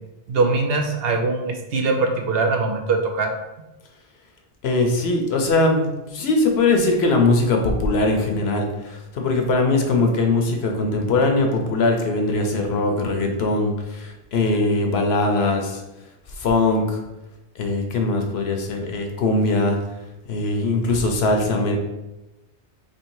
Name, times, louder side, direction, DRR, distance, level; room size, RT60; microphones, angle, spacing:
voice 1, 0.3-3.3, right 3 dB, 65° right, 4 dB, 0.8 m, -22 dB
voice 2, 4.6-15.8 16.4-17.0 17.6-19.8 20.3-21.8, left 2 dB, 70° left, 3 dB, 0.9 m, -21 dB
3.1 x 2.7 x 4.5 m, 1.0 s
omnidirectional pair, 1.1 m